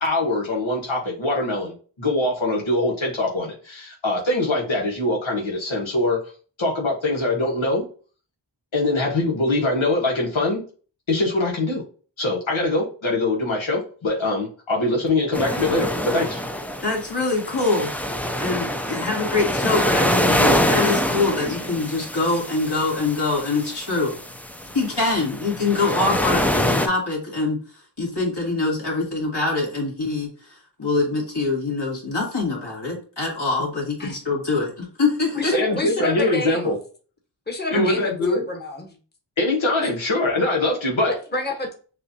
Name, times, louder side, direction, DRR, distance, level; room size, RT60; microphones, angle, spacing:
voice 1, 0.0-6.2 6.6-7.9 8.7-10.6 11.1-11.8 12.2-16.4 35.5-36.8 37.7-38.4 39.4-41.1, left 2 dB, 85° left, -2 dB, 1.3 m, -23 dB
sound 1, 15.3-26.9, left 1 dB, 5° left, 0.4 m, -25 dB
voice 2, 16.8-17.9 18.4-24.2 24.7-27.6 28.0-35.8 37.7-37.9, left 3 dB, 60° left, -2 dB, 2.2 m, -24 dB
voice 3, 35.3-36.7 37.5-38.9 39.8-39.9 41.0-41.7, left 2 dB, 20° left, 1 dB, 1.2 m, -29 dB
6.7 x 2.5 x 2.7 m, 0.38 s
wide cardioid pair, 50°, 46 cm